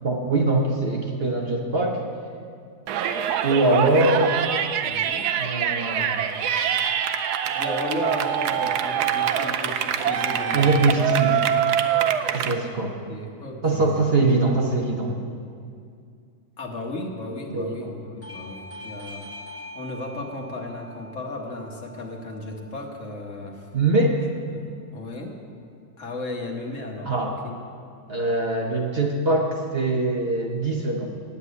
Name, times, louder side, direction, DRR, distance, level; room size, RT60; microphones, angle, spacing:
voice 1, 0.0-2.0 3.4-4.4 5.4-6.2 10.5-11.4 12.3-12.9 13.6-15.1 17.5-17.9 23.7-24.2 27.0-27.4 28.1-31.1, right 2 dB, 45° right, 0 dB, 1.0 m, -22 dB
Yell, 2.9-12.6, right 9 dB, 85° right, 1.2 m, -24 dB
voice 2, 4.8-5.3 7.5-10.9 12.8-14.3 16.6-19.3 19.7-23.7 24.5-25.4 26.0-27.6, left 2 dB, 55° left, 1 dB, 1.5 m, -35 dB
Bell / Doorbell, 18.2-23.4, left 1 dB, 10° left, 0.8 m, -43 dB
9.8 x 8.2 x 8.2 m, 2.3 s
omnidirectional pair, 1.7 m